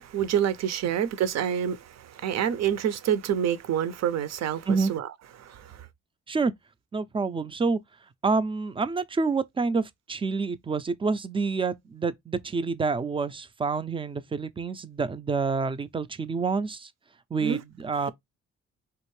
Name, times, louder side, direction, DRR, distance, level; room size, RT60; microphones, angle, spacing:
voice 1, 0.0-5.1 5.4-5.9 17.4-17.6, right 9 dB, 60° right, 0.6 m, -27 dB
voice 2, 6.9-7.8 8.2-9.8 10.1-16.9 17.3-18.1, right 4 dB, 20° right, 0.4 m, -27 dB
3.4 x 2.5 x 3.1 m
cardioid pair, 90°, 30 cm